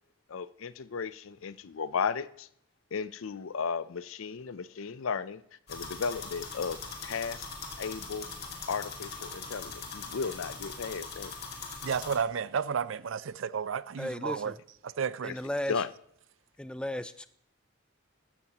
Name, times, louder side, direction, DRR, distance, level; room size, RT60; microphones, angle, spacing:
voice 1, 0.3-2.5 2.9-5.4 5.7-7.5 7.8-8.3 8.7-11.3 15.7-15.9, left 5 dB, 75° left, 0.5 m, -35 dB
sound 1, 5.7-12.2, left 4 dB, 50° left, 2.1 m, -41 dB
voice 2, 11.8-14.5 14.8-15.3, right 6 dB, 70° right, 0.4 m, -32 dB
voice 3, 14.0-14.6 15.2-15.8 16.6-17.3, left 1 dB, 5° left, 0.4 m, -35 dB
13.5 x 12.5 x 2.9 m
head